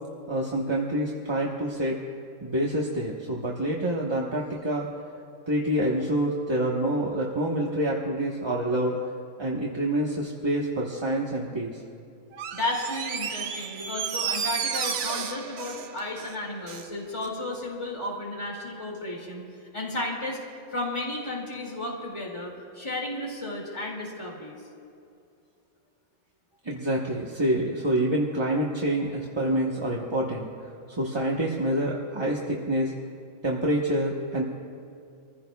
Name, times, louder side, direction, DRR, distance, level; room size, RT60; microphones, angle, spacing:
voice 1, 0.3-1.9 2.4-4.9 5.5-9.0 9.4-11.8 26.6-30.5 30.9-32.9 33.4-34.4, right 1 dB, 20° right, -3 dB, 1.0 m, -27 dB
Door, 12.3-16.9 17.2-17.3, right 7 dB, 75° right, 1.1 m, -32 dB
voice 2, 12.5-19.4 19.7-20.4 20.7-24.6, left 1 dB, 20° left, -2 dB, 2.4 m, -33 dB
26.0 x 15.5 x 2.3 m, 2.5 s
omnidirectional pair, 1.4 m